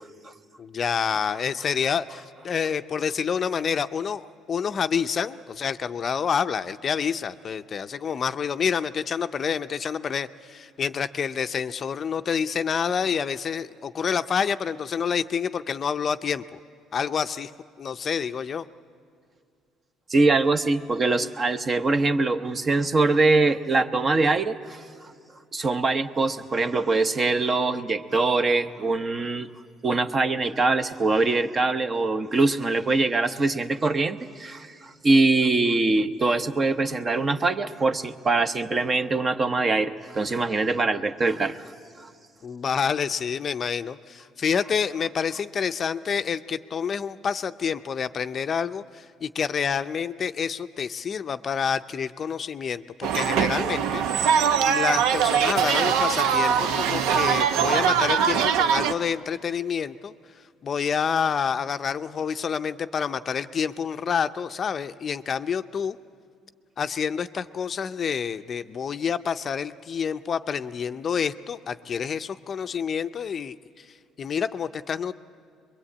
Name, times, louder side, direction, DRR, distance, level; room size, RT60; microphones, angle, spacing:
voice 1, 0.6-16.6 16.9-17.5 17.8-18.7 42.4-54.4 54.7-60.1 60.6-66.0 66.8-73.6 74.2-75.1, left 7 dB, 40° left, 10 dB, 0.5 m, -28 dB
voice 2, 20.1-24.8 25.5-29.5 29.8-41.6, right 3 dB, 30° right, 10 dB, 0.9 m, -23 dB
sound 1, 53.0-58.9, right 7 dB, 85° right, 0.8 m, -22 dB
23.5 x 22.5 x 8.6 m, 2.2 s
cardioid pair, 120°, 0 cm